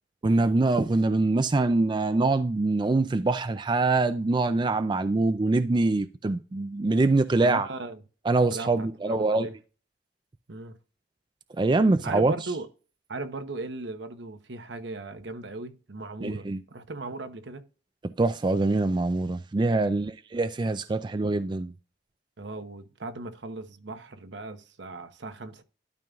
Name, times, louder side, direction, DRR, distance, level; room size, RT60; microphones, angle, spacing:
voice 1, 0.2-7.7 8.3-9.5 11.6-12.3 16.2-16.6 18.0-21.7, right 3 dB, 25° right, 0.4 m, -24 dB
voice 2, 7.4-8.0 8.5-9.5 10.5-10.8 12.0-12.7 13.1-17.6 19.7-20.1 22.4-25.6, right 2 dB, 75° right, 0.9 m, -38 dB
12.0 x 5.3 x 2.4 m
head